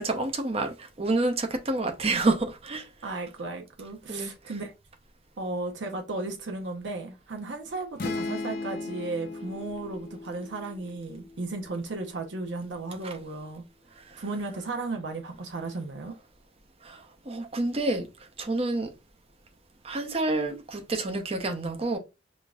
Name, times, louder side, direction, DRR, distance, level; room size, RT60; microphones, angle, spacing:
voice 1, 0.0-2.9 4.1-4.3 13.0-13.1 14.1-14.2 16.8-18.1 18.4-18.9 19.8-22.0, right 2 dB, 35° right, 0.7 m, -28 dB
voice 2, 3.0-4.7 5.4-13.6 14.2-16.1, right 3 dB, 85° right, 0.7 m, -35 dB
sound 1, 8.0-11.7, left 3 dB, 55° left, 0.7 m, -37 dB
5.0 x 2.6 x 2.3 m
head